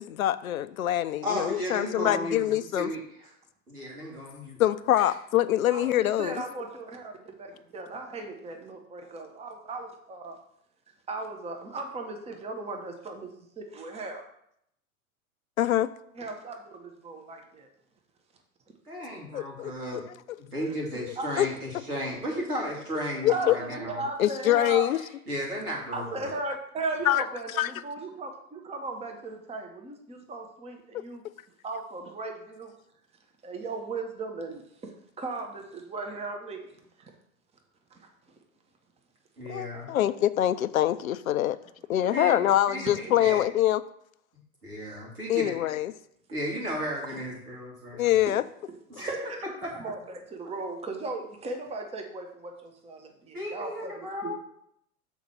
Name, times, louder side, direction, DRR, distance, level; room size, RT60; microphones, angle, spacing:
voice 1, 0.0-2.9 4.6-6.4 15.6-15.9 19.3-20.0 21.0-21.5 23.2-23.6 24.2-25.0 27.1-27.2 27.5-27.7 39.5-41.6 41.9-43.8 45.3-45.9 47.9-48.4, left 12 dB, 70° left, 15 dB, 0.5 m, -25 dB
voice 2, 1.2-2.4 2.7-3.3 3.7-4.6 4.9-5.1 18.8-20.0 20.4-24.0 25.3-26.3 39.4-39.9 42.1-42.4 42.7-43.4 44.6-45.6 46.3-48.0 48.9-49.9 53.3-54.4, equal, 80° right, -3 dB, 3.1 m, -34 dB
voice 3, 5.7-10.4 11.1-13.3 13.6-14.2 16.2-17.7 21.2-21.3 23.3-24.9 25.9-31.2 31.6-32.7 33.4-37.1 37.9-38.1 43.0-43.1 48.3-48.4 49.0-49.1 49.7-54.3, right 3 dB, 15° right, 3 dB, 1.0 m, -37 dB
7.0 x 4.4 x 6.0 m, 0.74 s
figure-of-eight pair, 90°, 44 cm